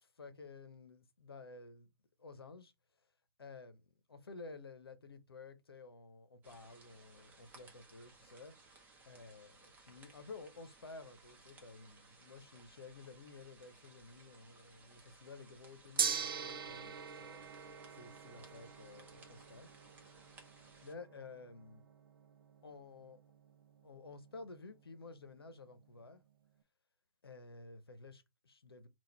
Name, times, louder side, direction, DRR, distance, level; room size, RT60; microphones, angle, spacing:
voice 1, 0.0-1.9 2.2-2.7 3.4-3.8 4.1-8.5 9.0-17.5 17.9-19.7 20.8-21.8 22.6-23.2 23.8-26.2 27.2-28.9, left 3 dB, 75° left, 0.9 m, -53 dB
sound 1, 6.4-20.9, right 3 dB, 15° right, 1.0 m, -62 dB
Gong, 16.0-26.2, right 6 dB, 65° right, 0.6 m, -44 dB
3.8 x 2.4 x 4.3 m
figure-of-eight pair, 125°, 13 cm